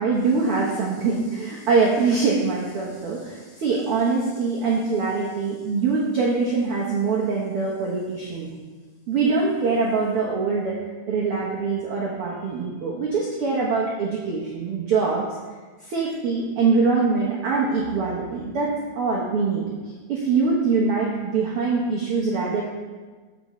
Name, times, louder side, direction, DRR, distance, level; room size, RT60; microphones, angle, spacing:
voice 1, 0.0-8.5 9.1-10.7 11.1-15.2 15.8-19.6 20.1-22.6, right 4 dB, 60° right, -4 dB, 1.6 m, -23 dB
11.5 x 7.7 x 3.1 m, 1.4 s
omnidirectional pair, 3.7 m